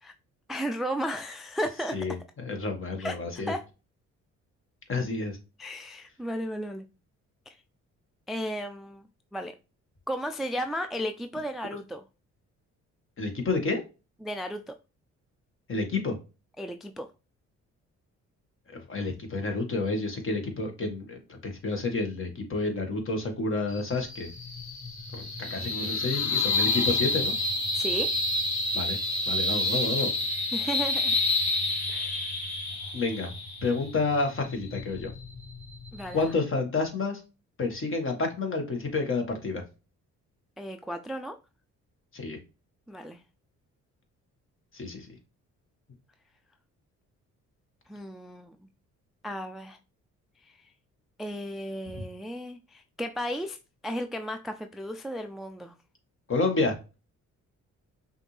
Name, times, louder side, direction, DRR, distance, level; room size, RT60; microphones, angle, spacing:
voice 1, 0.5-2.1 3.0-3.2 3.5-3.7 5.6-6.9 7.5-7.6 8.3-9.1 9.3-9.5 10.1-12.0 14.2-14.8 16.6-17.1 27.7-28.1 30.5-31.2 31.9-32.3 35.9-36.3 40.6-41.4 42.9-43.2 47.9-48.6 49.2-49.8 50.4-50.7 51.2-53.6 53.8-55.7, equal, ahead, 0.3 m, -34 dB
voice 2, 1.9-3.5 4.9-5.4 13.2-13.8 15.7-16.1 18.7-24.3 25.1-27.3 28.7-29.0 29.3-30.1 32.9-33.3 33.6-35.1 36.1-37.2 37.6-39.6 42.1-42.4 44.7-45.1 51.9-52.0 56.3-56.8, left 3 dB, 45° left, 1.5 m, -29 dB
sound 1, 23.7-36.3, left 2 dB, 65° left, 1.5 m, -29 dB
5.7 x 2.6 x 3.2 m
cardioid pair, 90°, 30 cm